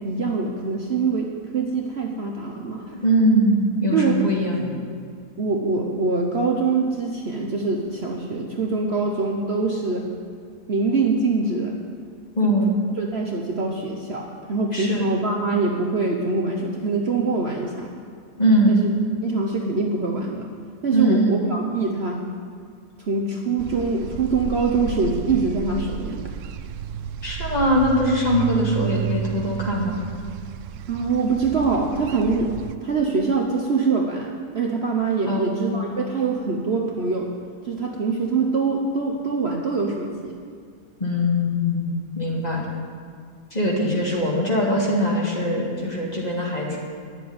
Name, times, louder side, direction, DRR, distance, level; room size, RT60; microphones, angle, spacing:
voice 1, 0.0-3.0 3.9-4.2 5.4-10.1 10.7-11.8 12.4-12.5 13.0-17.9 18.7-18.9 19.2-20.5 20.8-22.2 23.0-26.2 30.9-32.5 32.8-37.3 37.6-40.3, right 4 dB, 45° right, 0 dB, 1.0 m, -24 dB
voice 2, 3.0-4.7 12.4-12.7 14.7-15.0 18.4-18.8 20.9-21.4 27.2-30.0 35.3-35.8 41.0-41.9 42.2-42.6 43.5-46.8, equal, 25° left, -3 dB, 2.1 m, -21 dB
sound 1, 23.6-32.8, right 9 dB, 70° right, 0.8 m, -32 dB
10.5 x 7.4 x 9.3 m, 2.1 s
omnidirectional pair, 1.7 m